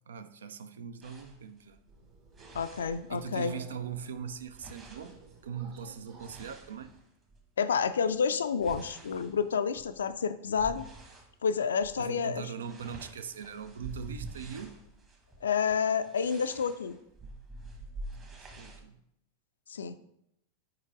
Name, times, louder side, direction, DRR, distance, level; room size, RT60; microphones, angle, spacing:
voice 1, 0.1-1.8 3.1-5.2 5.4-6.9 12.0-14.8 18.1-19.0, right 7 dB, 65° right, 0.4 m, -41 dB
sound 1, 1.0-3.5 3.8-7.5 8.0-11.3 11.7-12.0 12.3-18.8, right 2 dB, 25° right, 1.3 m, -48 dB
Subway metro underground, 1.9-7.0, right 3 dB, 40° right, 1.3 m, -55 dB
voice 2, 2.5-3.5 7.6-10.9 11.4-12.5 15.4-17.0 19.7-20.0, left 6 dB, 65° left, 0.3 m, -29 dB
4.7 x 4.5 x 4.8 m
figure-of-eight pair, 90°, 0 cm